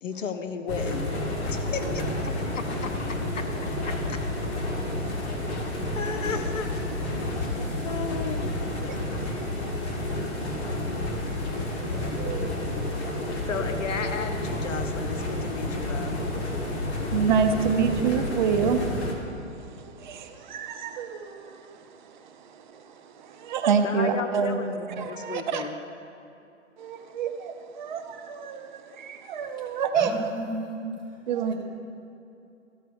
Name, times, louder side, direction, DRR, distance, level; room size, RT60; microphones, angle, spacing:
voice 1, 0.0-1.1 1.5-2.9 3.8-4.2 5.9-6.7 7.8-8.6 13.4-16.1 23.8-24.8 25.1-25.8, left 5 dB, 75° left, 8 dB, 0.8 m, -34 dB
sound 1, 0.7-19.1, left 1 dB, 55° left, 1.7 m, -30 dB
voice 2, 8.9-13.5 17.1-25.6 26.8-30.1 31.3-31.5, right 6 dB, 40° right, 8 dB, 0.6 m, -29 dB
voice 3, 29.9-31.2, right 1 dB, 10° left, -7 dB, 2.0 m, -34 dB
13.0 x 4.6 x 5.1 m, 2.7 s
figure-of-eight pair, 125°, 38 cm